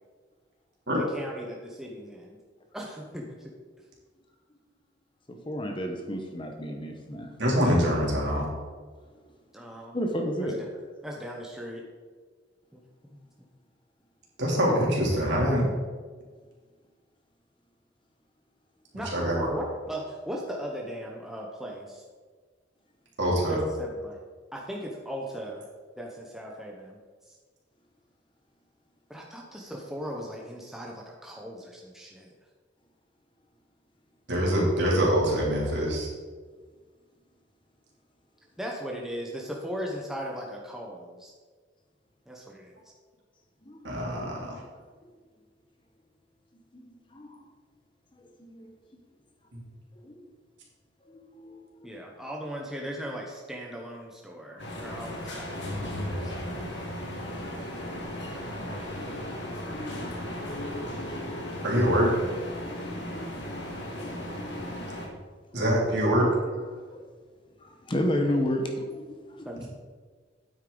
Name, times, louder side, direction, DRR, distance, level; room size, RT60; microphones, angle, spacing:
voice 1, 0.9-2.4 2.7-3.5 9.5-10.0 10.4-10.7 11.0-11.8 12.7-13.2 18.9-22.0 23.5-24.2 24.5-25.7 26.0-27.0 27.2-27.4 29.1-32.3 38.6-41.3 42.3-42.8 51.8-56.3 69.4-69.7, equal, ahead, -1 dB, 0.8 m, -38 dB
voice 2, 5.3-7.3 9.9-10.6 43.6-44.5 46.7-47.4 48.2-48.7 50.0-50.3 51.1-51.9 58.0-61.7 62.5-64.9 66.7-67.0 67.6-69.7, equal, 25° left, 4 dB, 0.8 m, -34 dB
voice 3, 7.4-8.4 14.4-15.7 19.1-19.5 23.2-23.6 34.3-36.1 43.8-44.5 49.5-49.6 61.6-62.1 65.5-66.3, equal, 60° right, -3 dB, 2.8 m, -24 dB
sound 1, 54.6-65.1, left 1 dB, 65° left, 1.7 m, -36 dB
9.3 x 8.2 x 3.8 m, 1.5 s
head